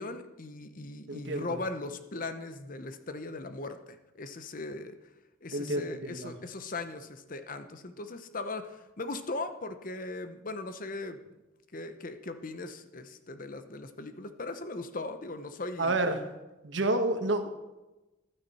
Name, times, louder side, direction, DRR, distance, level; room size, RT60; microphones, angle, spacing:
voice 1, 0.0-5.0 5.4-11.2 11.7-16.0, left 2 dB, 40° left, 9 dB, 0.8 m, -39 dB
voice 2, 1.1-1.6 5.5-6.3 15.8-16.3 16.6-17.5, right 2 dB, 65° right, 7 dB, 1.3 m, -29 dB
14.5 x 12.0 x 4.2 m, 1.1 s
head